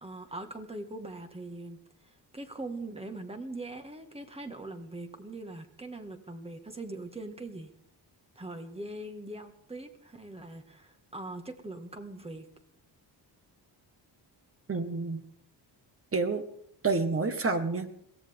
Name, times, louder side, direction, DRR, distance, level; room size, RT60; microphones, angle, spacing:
voice 1, 0.0-1.8 2.3-7.7 8.4-12.5, right 2 dB, 15° right, 4 dB, 1.8 m, -41 dB
voice 2, 14.7-15.2 16.1-16.4 16.8-17.9, right 3 dB, 30° right, 7 dB, 1.6 m, -28 dB
22.5 x 17.0 x 3.6 m, 0.67 s
wide cardioid pair, 145°, 42 cm